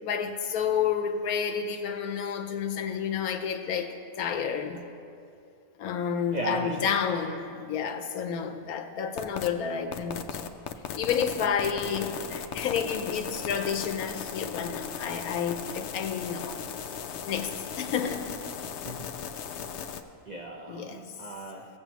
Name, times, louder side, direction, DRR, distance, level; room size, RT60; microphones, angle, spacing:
voice 1, 0.0-4.8 5.8-10.3 11.0-16.6 17.3-18.3 20.7-21.0, left 7 dB, 85° left, 7 dB, 1.2 m, -30 dB
voice 2, 6.3-7.0 18.8-19.1 20.3-21.7, right 2 dB, 55° right, 0 dB, 0.5 m, -36 dB
sound 1, 9.2-9.5 9.9-20.0, left 7 dB, 65° left, 0.7 m, -37 dB
16.5 x 7.6 x 3.0 m, 2.5 s
omnidirectional pair, 1.5 m